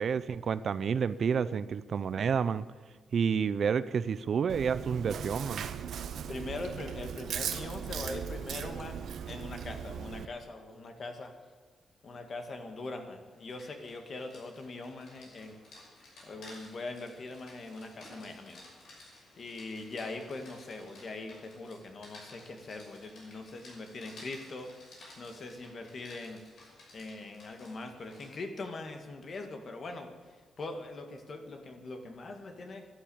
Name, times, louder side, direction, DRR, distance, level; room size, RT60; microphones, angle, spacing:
voice 1, 0.0-2.7 3.1-5.7, right 6 dB, 50° right, 16 dB, 0.5 m, -29 dB
Chewing mastication, 4.5-10.3, right 8 dB, 70° right, 0.9 m, -38 dB
voice 2, 6.3-9.0 9.2-11.3 12.0-15.6 16.2-18.7 19.4-24.7 25.2-26.4 26.9-30.1 30.6-32.9, left 2 dB, 40° left, 6 dB, 2.0 m, -42 dB
Rain, 13.3-28.4, left 2 dB, 65° left, 5.8 m, -55 dB
12.0 x 12.0 x 8.6 m, 1.4 s
wide cardioid pair, 145°, 0 cm